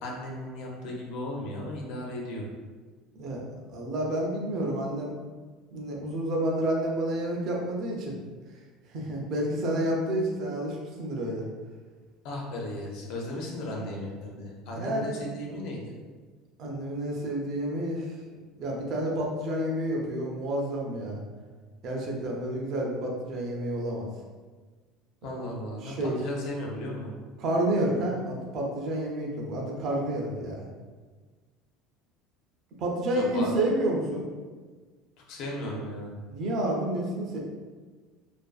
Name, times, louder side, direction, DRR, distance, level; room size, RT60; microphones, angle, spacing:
voice 1, 0.0-2.5 12.2-15.9 25.2-27.1 33.1-33.5 35.3-36.2, left 1 dB, 50° left, -1 dB, 0.5 m, -36 dB
voice 2, 3.2-5.1 5.7-8.2 8.9-11.4 14.7-15.1 16.6-18.1 18.6-21.2 21.8-24.1 25.8-26.2 27.4-30.7 32.8-34.3 36.3-37.4, right 1 dB, 40° right, -1 dB, 0.4 m, -29 dB
2.5 x 2.3 x 2.3 m, 1.4 s
cardioid pair, 175°, 0 cm